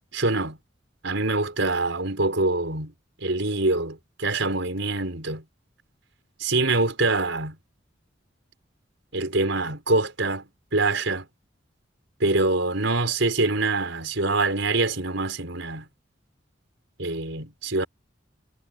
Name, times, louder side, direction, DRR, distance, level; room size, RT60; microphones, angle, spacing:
voice 1, 0.1-0.6 1.0-2.9 3.2-5.4 6.4-7.6 9.1-10.5 10.7-11.3 12.2-15.8 17.0-17.9, right 2 dB, 75° right, 4.6 m, -25 dB
head